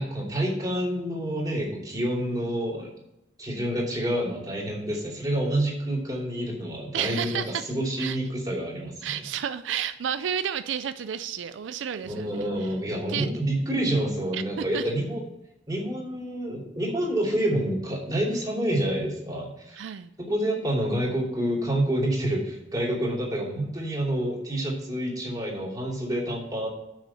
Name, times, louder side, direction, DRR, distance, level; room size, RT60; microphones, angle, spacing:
voice 1, 0.0-2.9 3.4-7.4 7.7-9.2 12.0-15.2 15.7-19.9 20.2-26.7, right 1 dB, 20° right, -3 dB, 2.9 m, -28 dB
voice 2, 6.9-7.7 8.0-8.2 9.0-12.7 13.1-13.3 14.3-14.4 14.7-14.8 19.7-20.1, right 8 dB, 85° right, 11 dB, 0.4 m, -31 dB
6.5 x 6.3 x 6.8 m, 0.86 s
head